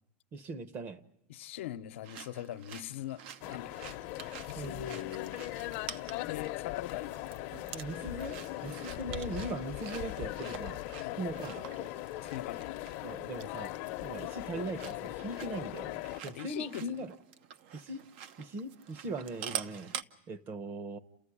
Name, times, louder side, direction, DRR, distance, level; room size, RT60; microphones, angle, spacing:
voice 1, 0.3-1.0 4.6-5.0 7.7-10.8 11.2-11.9 13.0-16.0 16.2-17.1 17.7-18.0 18.4-19.9 20.3-21.0, right 2 dB, 30° right, 1.0 m, -40 dB
voice 2, 1.3-3.2 3.5-3.9 4.5-5.4 6.3-7.1 11.0-11.2 12.2-12.7 16.3-17.0, left 13 dB, 85° left, 0.9 m, -41 dB
sound 1, 2.0-20.0, right 9 dB, 65° right, 0.9 m, -47 dB
sound 2, 3.4-16.2, left 16 dB, 55° left, 0.8 m, -39 dB
29.0 x 14.5 x 9.9 m
supercardioid pair, 150°, 6 cm